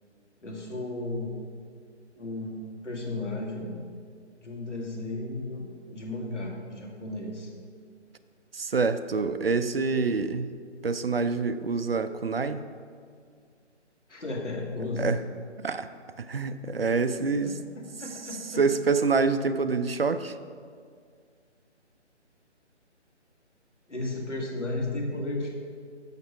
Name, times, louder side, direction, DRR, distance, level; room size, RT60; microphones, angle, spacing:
voice 1, 0.4-1.3 2.2-2.6 2.8-3.7 4.4-7.5 14.1-15.1 17.4-18.6 23.9-25.5, left 2 dB, 80° left, -2 dB, 2.0 m, -34 dB
voice 2, 8.5-10.5 10.8-12.6 15.0-15.2 15.6-15.9 16.2-17.5 18.6-20.3, right 4 dB, 55° right, 11 dB, 0.4 m, -26 dB
6.6 x 6.1 x 5.9 m, 2.1 s
figure-of-eight pair, 150°, 36 cm